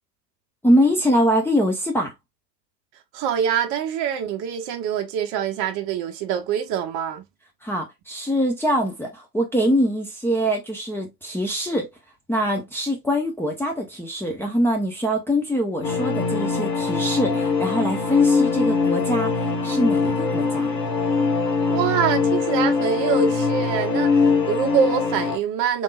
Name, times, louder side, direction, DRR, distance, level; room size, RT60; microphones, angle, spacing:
voice 1, 0.6-2.1 7.6-11.9 12.3-20.7, equal, 5° left, 0.8 m, -23 dB
voice 2, 3.1-7.2 21.7-25.8, right 8 dB, 35° right, 0.9 m, -24 dB
sound 1, 15.8-25.4, left 4 dB, 75° left, 1.5 m, -22 dB
4.0 x 3.5 x 2.3 m
hypercardioid pair, 95°, 50 cm